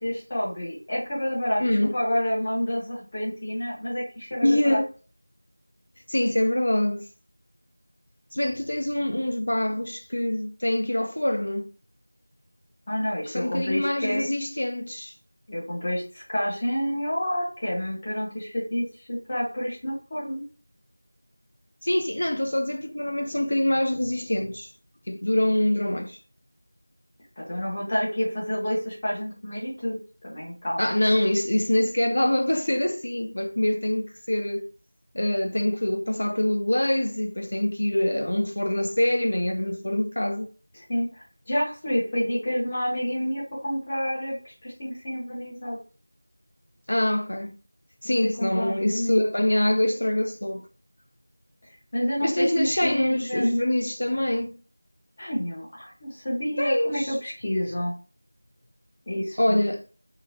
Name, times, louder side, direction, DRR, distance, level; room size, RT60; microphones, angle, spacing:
voice 1, 0.0-1.6 1.9-4.8 12.9-14.3 15.5-20.5 27.4-30.0 30.2-31.0 40.7-45.8 48.0-49.2 51.9-53.6 55.2-57.9 59.1-59.6, equal, 25° left, 0.7 m, -29 dB
voice 2, 1.6-1.9 4.4-4.9 6.1-7.0 8.3-11.7 13.3-15.1 21.8-24.7 25.1-26.2 30.8-34.7 35.1-40.5 46.9-47.5 48.0-50.6 52.2-54.6 56.6-57.1 59.4-59.8, left 1 dB, 60° left, 0.4 m, -25 dB
2.8 x 2.1 x 2.7 m
figure-of-eight pair, 175°, 0 cm